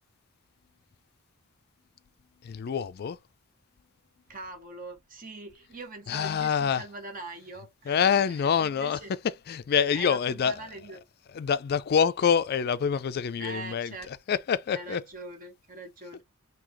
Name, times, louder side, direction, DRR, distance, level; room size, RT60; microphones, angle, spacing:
voice 1, 2.4-3.2 6.1-6.8 7.9-9.0 9.5-10.5 11.3-13.9 14.3-15.0, left 7 dB, 45° left, 0.3 m, -26 dB
voice 2, 4.3-9.1 9.9-11.0 13.4-14.1 14.7-16.2, right 2 dB, 40° right, 0.8 m, -42 dB
3.8 x 2.7 x 2.9 m
head